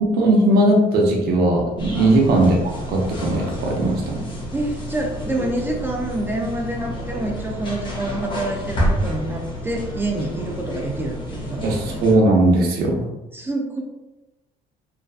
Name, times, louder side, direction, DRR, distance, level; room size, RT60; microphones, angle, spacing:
voice 1, 0.1-2.6 2.9-4.2 11.6-13.1, right 1 dB, 65° right, -1 dB, 0.5 m, -18 dB
sound 1, 1.8-12.2, equal, 30° left, 0.6 m, -29 dB
voice 2, 4.5-12.1 13.3-13.8, right 1 dB, 15° right, 0 dB, 0.3 m, -27 dB
2.4 x 2.1 x 2.3 m, 1.0 s
cardioid pair, 110°, 17 cm